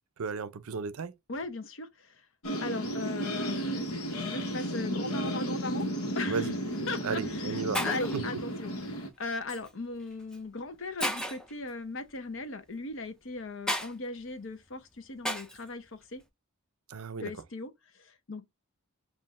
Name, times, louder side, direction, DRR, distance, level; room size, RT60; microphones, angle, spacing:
voice 1, 0.2-1.1 6.3-6.5 7.0-7.8 8.1-8.2 16.9-17.3, right 5 dB, 75° right, 0.5 m, -34 dB
voice 2, 1.3-2.2 2.6-3.9 4.2-5.9 6.2-6.5 6.9-16.2 17.2-18.5, left 3 dB, 60° left, 0.7 m, -38 dB
sound 1, 2.4-9.1, equal, 80° left, 1.2 m, -33 dB
Shatter, 6.5-6.7 7.4-7.5 7.7-8.2 9.5-9.7 10.3-10.4 11.0-11.5 13.7-13.9 15.2-15.6, left 1 dB, 5° left, 0.4 m, -33 dB
7.3 x 2.5 x 2.5 m
head